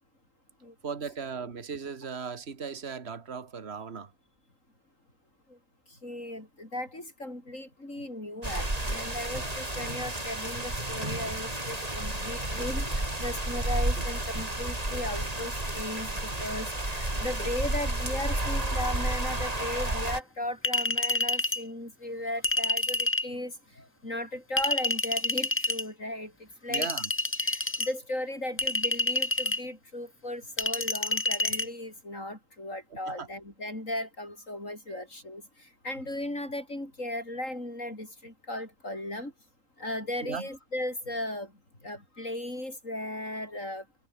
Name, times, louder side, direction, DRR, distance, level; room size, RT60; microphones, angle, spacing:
voice 1, 0.8-4.1 14.0-14.1 26.7-27.1 33.1-33.3 40.2-40.5, right 6 dB, 45° right, 2.1 m, -37 dB
voice 2, 5.9-26.9 27.4-39.3 39.8-43.9, left 1 dB, 60° left, 8.6 m, -37 dB
sound 1, 8.4-20.2, right 1 dB, 25° right, 4.1 m, -31 dB
Chink clink, 20.6-21.6 22.4-23.3 24.6-25.8 26.7-27.9 28.6-29.6 30.6-31.7, left 2 dB, 15° left, 0.6 m, -28 dB
omnidirectional pair, 1.5 m